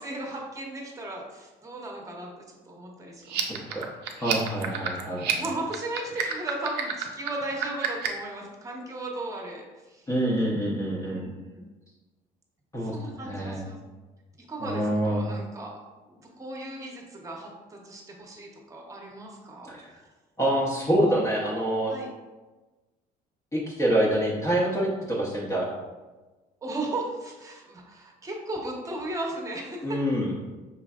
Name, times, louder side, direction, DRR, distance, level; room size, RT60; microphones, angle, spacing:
voice 1, 0.0-3.6 5.3-10.1 11.0-11.6 12.8-13.8 14.4-19.7 21.9-22.1 26.6-30.0, right 2 dB, 20° right, -1 dB, 0.9 m, -36 dB
sound 1, 3.2-8.3, right 9 dB, 75° right, 0.5 m, -30 dB
voice 2, 3.5-3.9 4.2-5.4 10.1-11.2 12.7-13.6 14.6-15.2 19.7-19.8 20.4-21.9 23.5-25.7 29.8-30.3, right 1 dB, 20° left, -5 dB, 0.7 m, -26 dB
5.3 x 3.2 x 2.4 m, 1.2 s
cardioid pair, 110°, 17 cm